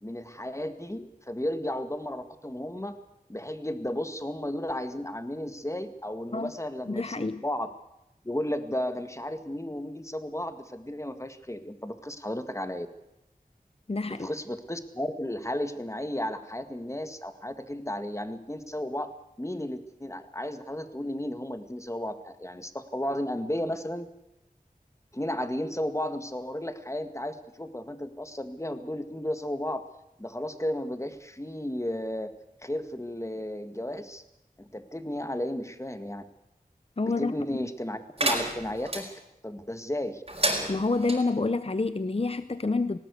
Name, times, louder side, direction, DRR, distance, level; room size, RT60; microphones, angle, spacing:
voice 1, 0.0-3.0 3.3-7.7 8.2-12.9 14.1-19.1 19.4-24.1 25.1-29.8 30.2-32.3 32.6-34.2 34.6-36.2 37.0-39.1 39.4-40.2, left 1 dB, 20° left, 9 dB, 1.8 m, -33 dB
voice 2, 6.9-7.4 13.9-14.3 37.0-37.3 37.6-37.7 40.7-43.0, left 3 dB, 40° left, 13 dB, 0.7 m, -28 dB
sound 1, 38.2-39.0 40.3-41.2, right 1 dB, 40° right, 4.9 m, -29 dB
19.0 x 18.5 x 8.3 m, 0.88 s
wide cardioid pair, 55°, 15 cm